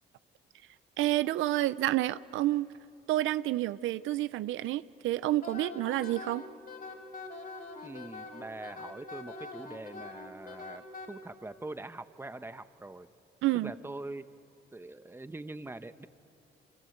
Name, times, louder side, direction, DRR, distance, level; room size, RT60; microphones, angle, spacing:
voice 1, 1.0-2.7 3.1-6.4 13.4-13.7, right 15 dB, 85° right, 16 dB, 0.6 m, -29 dB
Wind instrument woodwind instrument, 5.4-11.1, left 3 dB, 45° left, 4.1 m, -44 dB
voice 2, 7.8-13.1 13.5-14.3 14.7-16.1, right 2 dB, 10° right, 11 dB, 1.0 m, -43 dB
28.5 x 25.0 x 7.9 m, 2.6 s
cardioid pair, 90°, 20 cm